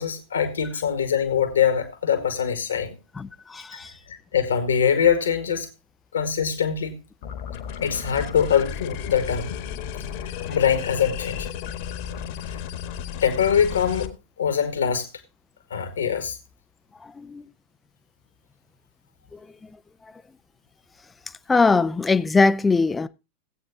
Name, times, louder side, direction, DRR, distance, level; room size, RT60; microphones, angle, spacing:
voice 1, 0.0-3.0 4.1-5.7 6.1-7.0 7.8-9.6 10.5-11.5 13.2-15.1 15.7-16.4, left 8 dB, 70° left, 1.9 m, -23 dB
voice 2, 3.2-3.9 17.0-17.5 19.3-19.4 21.5-23.1, left 4 dB, 10° left, 0.6 m, -21 dB
sound 1, 7.2-14.1, left 8 dB, 50° left, 1.5 m, -33 dB
17.0 x 8.7 x 2.7 m
figure-of-eight pair, 90°, 0 cm